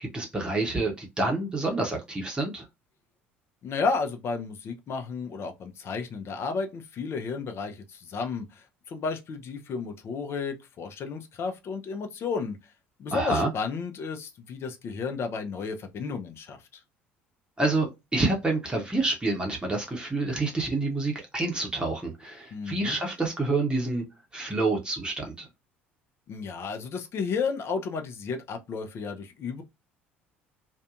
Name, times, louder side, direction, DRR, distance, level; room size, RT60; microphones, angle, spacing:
voice 1, 0.0-2.6 13.1-13.5 17.6-24.0 24.3-25.5, right 2 dB, 15° right, 0.8 m, -28 dB
voice 2, 3.6-12.6 13.0-16.6 22.5-23.0 26.3-29.6, left 5 dB, 40° left, 0.6 m, -32 dB
2.6 x 2.2 x 2.4 m
figure-of-eight pair, 60°, 6 cm